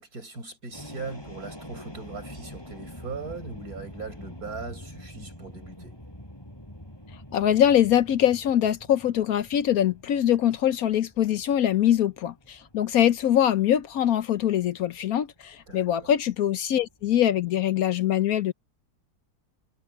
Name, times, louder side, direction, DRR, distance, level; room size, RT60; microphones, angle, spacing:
voice 1, 0.0-6.0 15.7-16.1, right 4 dB, 65° right, 6.4 m, -39 dB
Jet airplane take off with strong ground whoosh., 0.7-17.5, left 1 dB, 15° left, 5.9 m, -46 dB
voice 2, 7.3-18.5, left 10 dB, 70° left, 1.1 m, -23 dB
omnidirectional pair, 1.7 m